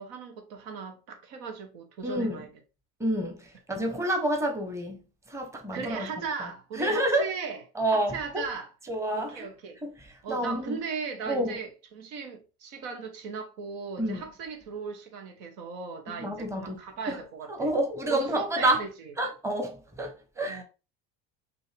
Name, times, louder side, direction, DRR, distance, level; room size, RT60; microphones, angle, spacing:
voice 1, 0.0-2.5 5.7-7.6 7.9-8.7 9.1-9.8 10.2-17.7 18.1-18.9 20.5-20.6, right 5 dB, 75° right, 1.2 m, -37 dB
voice 2, 2.0-2.4 3.0-5.0 5.3-6.1 6.4-7.3 7.7-8.5 8.9-9.5 9.8-10.8 11.3-11.6 14.0-14.3 16.1-16.8 17.1-17.2 17.5-18.8 19.2-20.6, right 1 dB, 10° right, 1.0 m, -29 dB
5.2 x 2.8 x 3.3 m
supercardioid pair, 110°, 31 cm